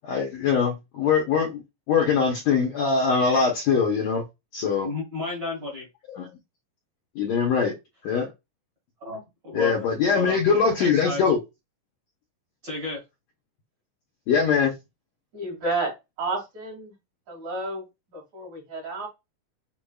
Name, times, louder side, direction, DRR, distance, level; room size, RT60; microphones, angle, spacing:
voice 1, 0.0-1.6 1.9-4.2 4.5-4.9 6.2-6.3 7.1-7.7 8.0-8.3 9.5-11.4 14.3-14.7, left 5 dB, 75° left, 1.7 m, -22 dB
voice 2, 4.8-5.9 9.0-9.7 10.1-10.4 10.8-11.3 12.6-13.0, left 3 dB, 35° right, 2.1 m, -32 dB
voice 3, 15.3-16.9 17.3-17.8 18.1-19.1, right 2 dB, 55° right, 3.6 m, -31 dB
6.9 x 2.9 x 2.3 m
omnidirectional pair, 4.1 m